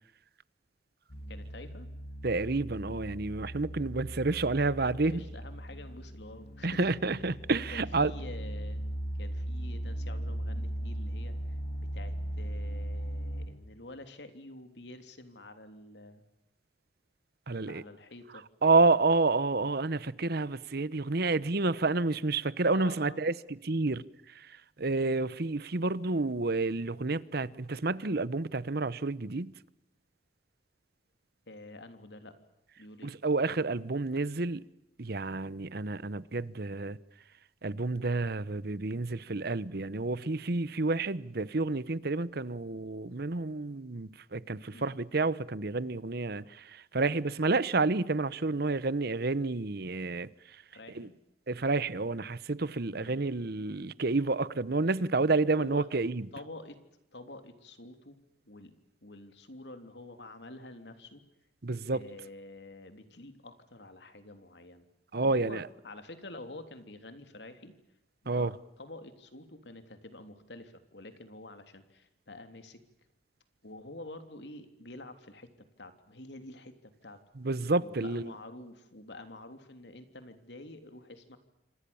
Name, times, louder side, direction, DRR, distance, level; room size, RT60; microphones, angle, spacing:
sound 1, 1.1-13.5, right 1 dB, 55° left, 2.7 m, -38 dB
voice 1, 1.3-1.9 4.8-7.1 7.7-16.2 17.6-18.5 22.7-23.2 31.5-32.4 32.8-33.1 44.7-44.9 46.3-46.6 50.7-51.1 53.0-53.2 55.6-55.9 56.3-56.8 57.1-58.2 58.4-58.7 59.0-61.2 61.9-64.9 65.2-67.7 68.2-72.8 73.6-75.5 75.8-77.2 77.8-81.4, left 2 dB, 75° left, 3.3 m, -48 dB
voice 2, 2.2-5.2 6.6-8.1 17.5-17.8 18.6-23.3 23.6-24.0 24.8-29.5 33.0-34.6 35.0-37.0 37.6-46.6 46.9-50.3 50.9-51.1 51.5-56.2 61.6-62.0 65.1-65.6 68.3-68.5 77.4-78.3, right 3 dB, 60° right, 1.0 m, -29 dB
28.0 x 25.5 x 7.1 m
head